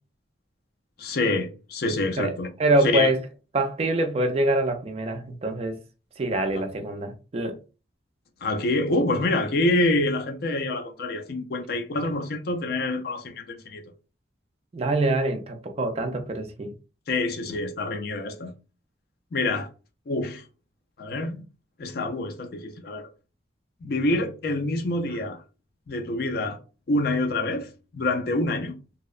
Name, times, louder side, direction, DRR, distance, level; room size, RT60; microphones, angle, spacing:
voice 1, 1.0-2.5 2.8-3.1 8.4-13.8 17.1-18.5 19.3-19.7 20.1-20.4 21.0-21.4 21.8-23.1 23.8-25.4 25.9-26.6 26.9-28.8, left 2 dB, 55° left, 0.4 m, -26 dB
voice 2, 2.6-3.2 3.5-5.8 6.2-7.6 14.7-16.7, right 1 dB, 35° right, 0.4 m, -25 dB
2.7 x 2.1 x 2.3 m
head